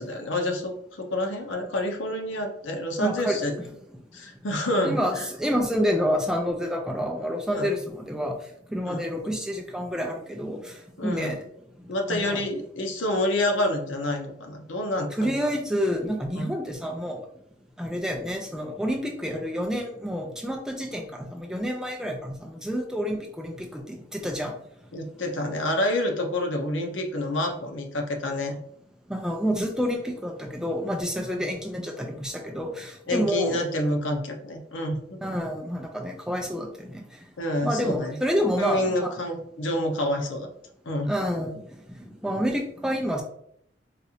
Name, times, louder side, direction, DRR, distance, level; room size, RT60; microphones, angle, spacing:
voice 1, 0.0-3.5 4.1-5.3 7.5-7.7 8.8-9.0 11.0-11.3 11.9-15.3 16.3-16.5 24.9-28.6 31.3-31.5 33.1-35.2 37.4-38.2 38.6-40.5 40.9-41.1, left 1 dB, 80° left, 3 dB, 0.7 m, -28 dB
voice 2, 3.0-3.7 4.8-8.4 8.7-11.5 12.1-12.4 15.1-17.2 17.8-24.5 29.1-33.6 35.2-37.0 37.6-39.1 41.1-41.7 42.0-43.2, equal, 5° right, 2 dB, 0.3 m, -28 dB
4.1 x 2.4 x 2.7 m, 0.71 s
head